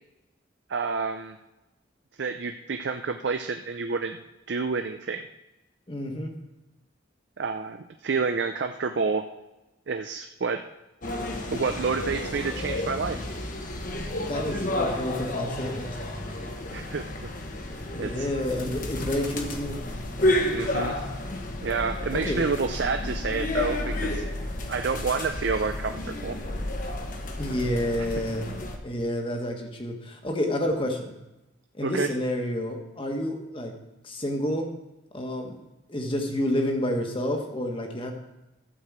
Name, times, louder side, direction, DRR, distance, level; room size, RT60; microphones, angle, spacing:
voice 1, 0.7-1.4 2.2-4.2 4.5-5.2 7.4-9.2 9.9-10.6 11.5-13.3 16.7-17.3 18.0-18.3 20.5-21.0 21.6-24.2 24.7-26.4 31.8-32.1, right 4 dB, 65° right, 7 dB, 0.5 m, -29 dB
voice 2, 5.9-6.3 14.2-15.9 17.9-19.8 22.1-22.4 27.4-28.5 28.8-31.1 31.8-33.7 34.0-34.7 35.1-35.6 35.9-38.1, left 1 dB, 25° left, 3 dB, 1.4 m, -29 dB
sound 1, 11.0-28.8, left 1 dB, 45° left, 1.1 m, -31 dB
12.5 x 4.7 x 7.4 m, 0.99 s
head